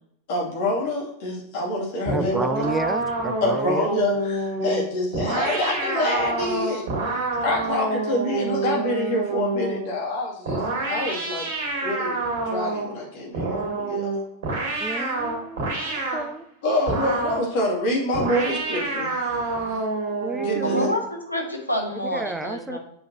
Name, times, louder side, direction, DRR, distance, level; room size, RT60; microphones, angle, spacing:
voice 1, 0.3-2.6 3.4-10.6 10.9-11.5 11.8-12.2 12.5-14.1 14.7-15.1 15.8-16.2 16.6-19.5 20.3-20.9, left 1 dB, 50° left, -2 dB, 2.4 m, -27 dB
sound 1, 2.0-9.9 10.4-13.0 13.3-16.3 16.9-17.5 18.1-21.0, right 3 dB, 55° right, 2.0 m, -27 dB
voice 2, 2.1-4.0 14.8-16.4 20.2-20.9 22.1-22.8, right 2 dB, 10° right, 12 dB, 0.4 m, -31 dB
voice 3, 20.6-22.8, left 1 dB, 85° left, 2 dB, 1.2 m, -28 dB
7.9 x 5.2 x 2.8 m, 0.75 s
figure-of-eight pair, 90°, 0 cm